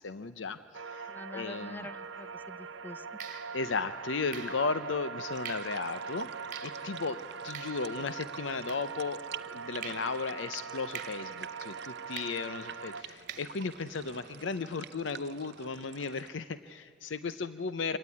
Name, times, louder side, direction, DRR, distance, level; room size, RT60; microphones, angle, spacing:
voice 1, 0.0-1.9 3.3-7.2 7.4-9.2 9.5-18.0, left 4 dB, 75° left, 12 dB, 0.7 m, -35 dB
sound 1, 0.7-13.0, right 5 dB, 85° right, 1.0 m, -42 dB
voice 2, 1.1-3.1 17.9-18.0, left 1 dB, 10° left, 14 dB, 0.6 m, -46 dB
sound 2, 2.0-2.3 3.2-9.4 9.8-14.5, right 7 dB, 45° right, 1.7 m, -49 dB
sound 3, 5.3-16.3, right 8 dB, 60° right, 0.6 m, -49 dB
25.0 x 17.5 x 9.7 m, 2.6 s
head